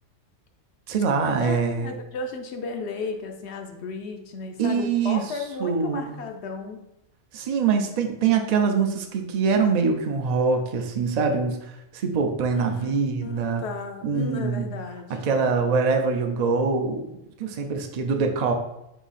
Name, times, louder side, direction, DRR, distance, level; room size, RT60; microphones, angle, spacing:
voice 1, 0.9-1.9 4.6-5.3 5.6-6.1 7.3-13.6 14.0-14.6 15.1-18.5, right 5 dB, 50° right, 3 dB, 0.5 m, -24 dB
voice 2, 1.4-6.8 12.5-15.2, left 4 dB, 65° left, 5 dB, 0.8 m, -34 dB
4.7 x 2.7 x 4.1 m, 0.85 s
omnidirectional pair, 1.3 m